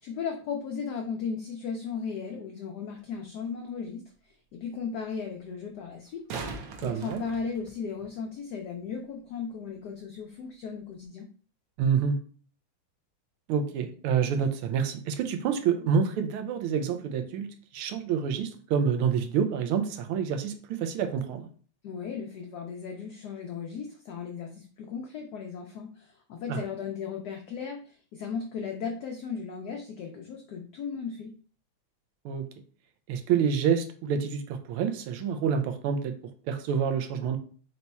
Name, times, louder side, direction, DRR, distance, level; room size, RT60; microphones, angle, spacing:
voice 1, 0.0-11.3 21.8-31.3, left 6 dB, 85° left, 2 dB, 0.8 m, -36 dB
sound 1, 3.1-3.2 5.9-8.1 10.9-11.0, right 4 dB, 70° right, 1.2 m, -40 dB
voice 2, 6.8-7.2 11.8-12.2 13.5-17.5 17.7-21.5 26.5-26.6 32.2-32.5 33.1-37.4, right 7 dB, 85° right, 7 dB, 1.5 m, -27 dB
4.2 x 2.3 x 4.0 m, 0.43 s
omnidirectional pair, 2.3 m